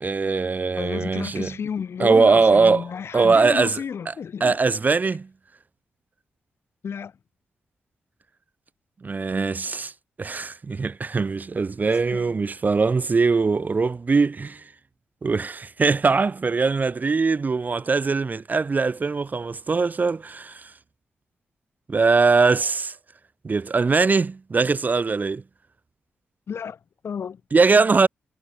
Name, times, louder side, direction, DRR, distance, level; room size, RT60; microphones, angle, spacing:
voice 1, 0.0-1.5 2.0-2.9 3.1-4.1 4.4-5.3 9.0-9.9 10.2-14.6 15.2-20.7 21.9-23.0 23.4-25.4 27.5-28.1, right 4 dB, 40° right, 0.4 m, -21 dB
voice 2, 0.8-4.6 6.8-7.1 12.1-12.4 26.5-27.4, left 7 dB, 65° left, 4.6 m, -32 dB
supercardioid pair, 40°, 5 cm